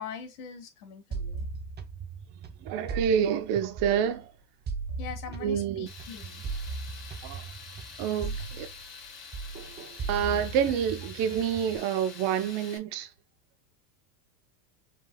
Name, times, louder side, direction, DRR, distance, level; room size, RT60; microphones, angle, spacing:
voice 1, 0.0-1.5 5.0-6.4 8.3-8.5, left 7 dB, 80° left, 1.6 m, -42 dB
sound 1, 1.1-4.2 4.7-9.1 9.3-11.8, right 4 dB, 20° right, 0.6 m, -38 dB
voice 2, 2.6-4.3 5.4-5.9 7.2-7.4 8.0-8.7 10.1-13.1, right 8 dB, 55° right, 0.9 m, -28 dB
Tools, 5.9-12.8, left 5 dB, 40° left, 2.4 m, -46 dB
4.7 x 3.7 x 2.3 m
hypercardioid pair, 105°, 46 cm